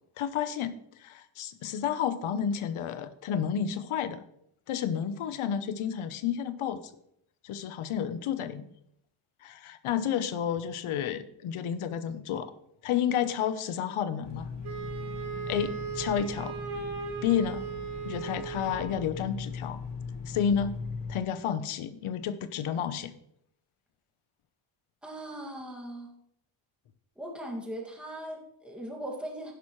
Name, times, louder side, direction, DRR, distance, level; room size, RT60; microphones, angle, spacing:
voice 1, 0.2-4.3 4.7-6.9 7.4-8.7 9.4-12.5 12.8-14.5 15.5-16.5 17.2-17.6 18.0-19.8 20.3-20.8 21.1-23.1, left 8 dB, 75° left, 12 dB, 1.0 m, -31 dB
sound 1, 14.2-21.2, left 4 dB, 40° left, 1.4 m, -40 dB
Wind instrument woodwind instrument, 14.6-19.1, right 6 dB, 80° right, 3.8 m, -37 dB
voice 2, 25.0-26.1 27.2-29.5, right 1 dB, ahead, -2 dB, 2.2 m, -39 dB
12.0 x 10.5 x 3.2 m, 0.74 s
cardioid pair, 140°, 49 cm